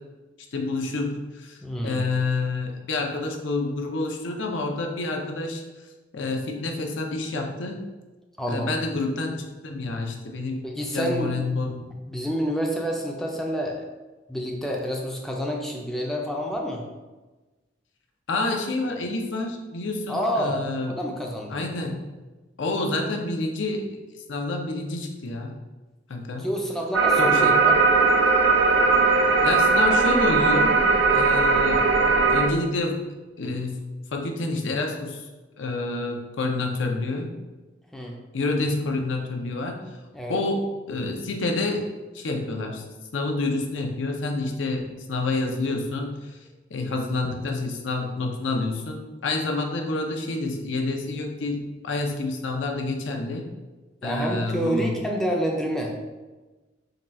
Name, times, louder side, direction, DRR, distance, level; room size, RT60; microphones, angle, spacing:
voice 1, 0.5-5.6 6.1-7.8 8.5-9.3 9.6-10.7 10.9-11.8 18.3-21.0 21.5-22.0 22.6-23.9 24.1-25.5 26.1-26.5 27.2-27.6 29.4-31.9 32.3-33.0 33.4-33.8 34.1-35.3 35.6-37.3 38.3-40.0 40.3-41.9 42.1-42.8 43.1-46.4 46.7-53.4 54.0-54.9, left 2 dB, 80° left, 2 dB, 0.6 m, -28 dB
voice 2, 1.6-2.0 8.4-8.9 10.6-11.4 12.1-13.8 14.3-16.8 20.1-21.7 26.4-27.8 37.9-38.2 40.1-40.4 54.0-55.9, equal, ahead, -1 dB, 0.4 m, -28 dB
sound 1, 26.9-32.5, right 4 dB, 70° right, 0.5 m, -19 dB
3.7 x 2.3 x 4.1 m, 1.2 s
head